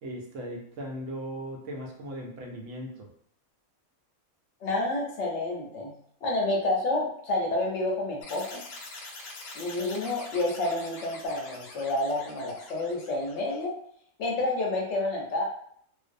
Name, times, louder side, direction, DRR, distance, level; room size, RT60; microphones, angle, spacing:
voice 1, 0.0-3.1, equal, 70° right, 0 dB, 0.9 m, -38 dB
voice 2, 4.6-5.9 6.2-8.6 9.5-13.7 14.2-15.4, left 2 dB, 65° left, -2 dB, 0.8 m, -29 dB
sound 1, 8.2-13.6, left 2 dB, 85° left, 1.0 m, -44 dB
2.5 x 2.0 x 2.5 m, 0.65 s
omnidirectional pair, 1.5 m